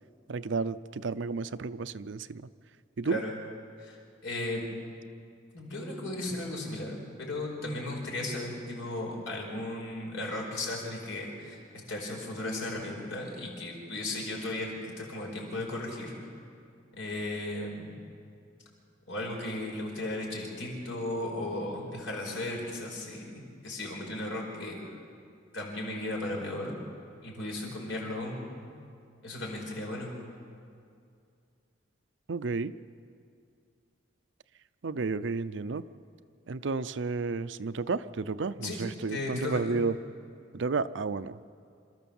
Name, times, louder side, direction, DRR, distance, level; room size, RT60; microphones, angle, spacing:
voice 1, 0.3-2.4 3.0-3.2 32.3-32.7 34.8-35.8 36.5-39.9 40.5-41.4, right 4 dB, 70° right, 14 dB, 0.5 m, -32 dB
voice 2, 3.0-3.4 3.8-4.7 5.5-11.6 11.9-16.1 17.0-18.0 19.1-24.8 25.5-26.8 27.2-28.5 29.2-30.1 38.6-38.8 39.1-39.7, left 1 dB, 85° left, 0 dB, 4.9 m, -36 dB
27.0 x 13.5 x 7.1 m, 2.4 s
head